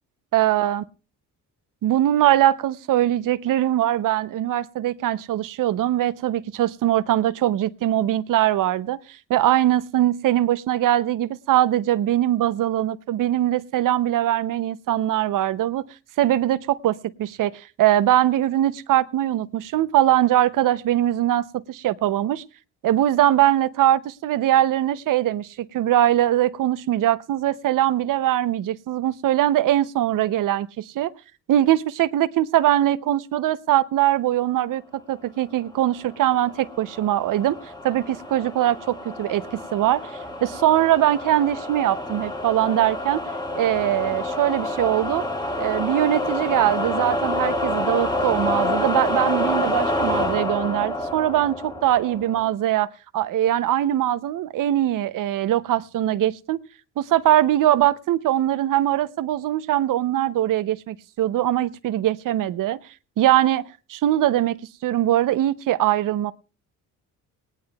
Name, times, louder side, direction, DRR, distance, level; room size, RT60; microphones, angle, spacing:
voice 1, 0.3-0.8 1.8-15.8 16.2-22.4 22.8-31.1 31.5-34.8 35.1-37.6 37.8-40.1 40.4-43.2 43.6-45.2 45.6-56.6 57.0-62.8 63.2-66.3, right 13 dB, 70° right, 0.7 m, -21 dB
sound 1, 36.0-52.5, left 1 dB, 10° left, 1.8 m, -28 dB
19.0 x 18.5 x 2.3 m
cardioid pair, 135°, 33 cm